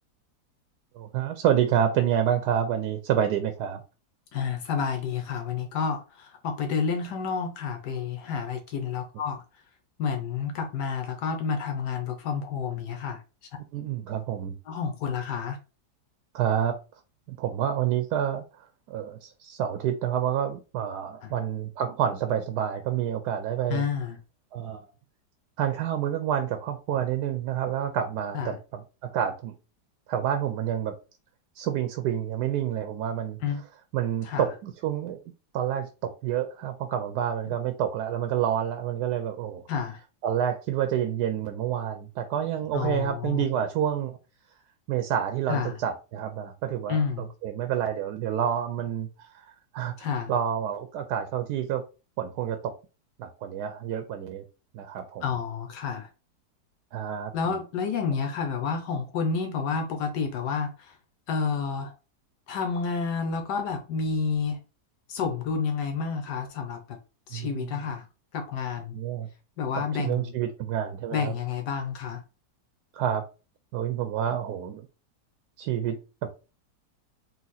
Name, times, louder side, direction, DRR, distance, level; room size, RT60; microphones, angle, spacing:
voice 1, 1.0-3.8 13.7-14.5 16.3-16.7 17.3-18.4 18.9-23.8 24.5-24.9 25.6-29.5 30.1-30.9 31.6-33.4 33.9-35.2 35.5-39.6 40.2-44.2 44.9-49.4 49.7-51.8 52.2-52.7 53.2-54.4 54.7-55.3 56.9-57.6 67.3-67.7 68.9-69.3 69.7-71.3 72.9-73.2 73.7-74.9 75.6-76.0 76.2-76.3, right 9 dB, 75° right, 1.1 m, -28 dB
voice 2, 4.3-9.4 10.0-13.2 14.7-15.6 23.7-24.2 28.3-28.6 33.4-33.6 34.2-34.5 39.7-40.0 42.7-43.5 45.5-45.8 46.9-47.3 50.0-50.3 55.2-56.1 57.3-60.9 61.3-61.9 62.5-64.6 65.1-67.0 67.3-68.0 68.3-69.0 69.6-70.3 71.1-72.2, left 6 dB, 80° left, 1.3 m, -30 dB
4.1 x 2.5 x 4.0 m
omnidirectional pair, 1.8 m